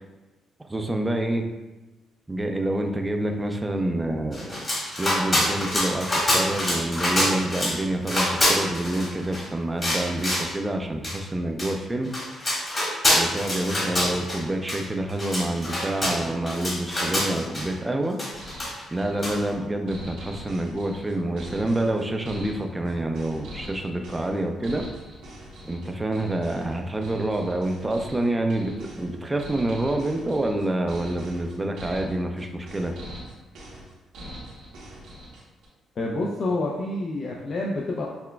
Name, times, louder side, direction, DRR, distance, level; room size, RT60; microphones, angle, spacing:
voice 1, 0.6-1.4 2.3-4.6 5.0-12.1 13.1-18.2 18.9-24.9 25.7-33.0, right 1 dB, 15° right, 4 dB, 0.4 m, -27 dB
sound 1, 4.3-7.8 8.0-9.4 9.8-10.5 11.0-11.2 11.6-11.7 12.1-14.4 14.7-14.8 15.1-17.7 18.2-18.9 19.2-19.4, left 1 dB, 30° left, 1.5 m, -25 dB
sound 2, 18.3-35.7, equal, 80° right, 0.9 m, -42 dB
voice 2, 36.0-38.1, left 2 dB, 50° left, -2 dB, 0.4 m, -28 dB
5.8 x 2.2 x 2.2 m, 1.1 s
cardioid pair, 90°, 0 cm